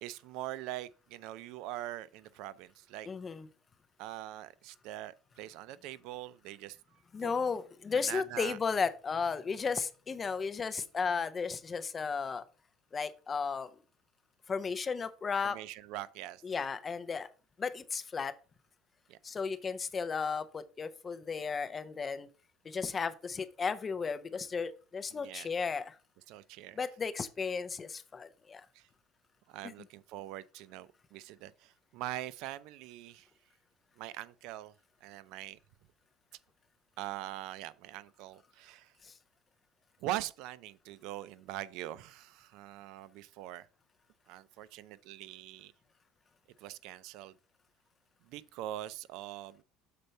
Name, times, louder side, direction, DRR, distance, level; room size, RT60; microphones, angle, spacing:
voice 1, 0.0-3.1 4.0-6.8 7.2-7.3 8.1-8.6 15.4-16.4 19.1-19.2 25.1-25.5 26.3-26.8 28.7-28.9 29.5-33.3 34.0-34.7 35.0-35.6 37.0-38.9 40.0-43.7 44.3-45.7 46.6-47.3 48.3-49.6, right 14 dB, 65° right, 0.4 m, -43 dB
voice 2, 3.1-3.5 7.1-12.4 12.9-13.7 14.5-15.6 16.4-17.3 17.6-18.3 19.2-22.3 22.6-25.9 26.8-28.7 29.6-29.7 39.0-39.1, left 5 dB, 20° left, 0.5 m, -34 dB
6.8 x 4.4 x 5.3 m
cardioid pair, 155°, 0 cm